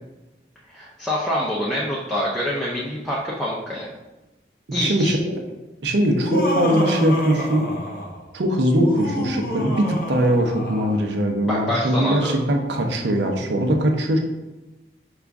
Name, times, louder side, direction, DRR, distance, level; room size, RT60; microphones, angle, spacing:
voice 1, 0.7-3.9 4.7-5.2 11.4-12.3, equal, ahead, -6 dB, 0.5 m, -25 dB
voice 2, 4.7-5.4 5.8-7.7 8.3-14.2, equal, 85° right, 3 dB, 0.6 m, -21 dB
Laughter, 6.1-8.2 8.7-11.0, equal, 55° left, 0.7 m, -28 dB
5.0 x 2.3 x 3.5 m, 1.1 s
head